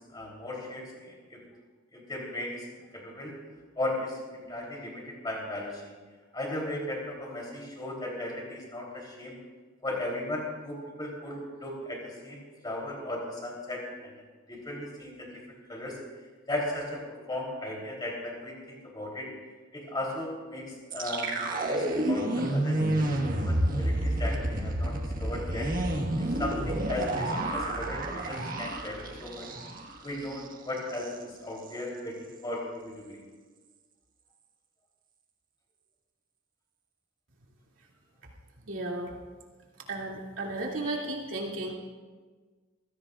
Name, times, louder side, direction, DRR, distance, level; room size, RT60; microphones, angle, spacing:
voice 1, 0.0-1.4 1.9-2.7 2.9-3.4 3.8-5.9 6.3-9.4 9.8-14.1 14.5-16.0 16.5-19.3 19.7-25.7 26.2-29.5 30.0-32.1 32.4-33.2, left 1 dB, 20° left, -2 dB, 3.4 m, -36 dB
sound 1, 20.9-29.9 30.2-30.4 30.8-31.1, right 1 dB, 45° right, 1.6 m, -29 dB
voice 2, 38.6-39.1 39.9-41.7, right 2 dB, 75° right, -2 dB, 2.7 m, -34 dB
24.5 x 16.0 x 2.5 m, 1.4 s
head